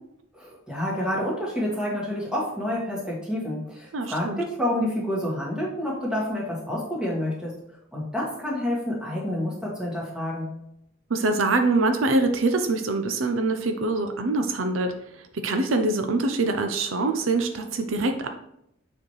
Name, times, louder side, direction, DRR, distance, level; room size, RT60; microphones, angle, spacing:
voice 1, 0.3-7.5 7.9-10.5, left 1 dB, 5° right, -4 dB, 1.7 m, -28 dB
voice 2, 3.9-4.4 11.1-14.9 15.4-18.3, right 2 dB, 75° right, 6 dB, 0.6 m, -24 dB
7.3 x 4.4 x 3.2 m, 0.77 s
head